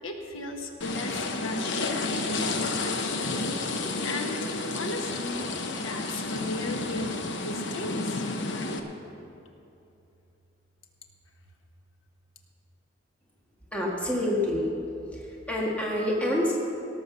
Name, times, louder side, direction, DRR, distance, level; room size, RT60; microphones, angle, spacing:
voice 1, 0.0-3.3 4.0-8.8, left 1 dB, 85° left, 3 dB, 1.3 m, -36 dB
sound 1, 0.8-8.8, left 3 dB, 60° left, 0.9 m, -31 dB
voice 2, 13.7-14.7 15.5-16.6, left 1 dB, 5° left, -4 dB, 1.6 m, -26 dB
17.5 x 6.7 x 6.9 m, 2.8 s
head